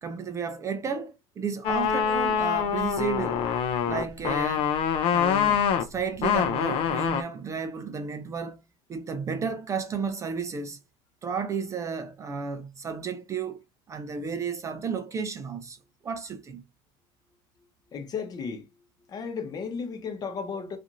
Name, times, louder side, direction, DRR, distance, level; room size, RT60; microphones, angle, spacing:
voice 1, 0.0-3.4 3.9-4.7 5.1-8.6 8.9-10.8 11.2-13.6 13.9-15.8 16.0-16.6, right 6 dB, 25° right, 0.4 m, -33 dB
sound 1, 1.6-7.2, left 8 dB, 50° left, 0.5 m, -25 dB
voice 2, 17.9-18.7 19.1-20.8, left 5 dB, 35° left, 0.9 m, -34 dB
2.5 x 2.5 x 2.9 m
supercardioid pair, 110°, 12 cm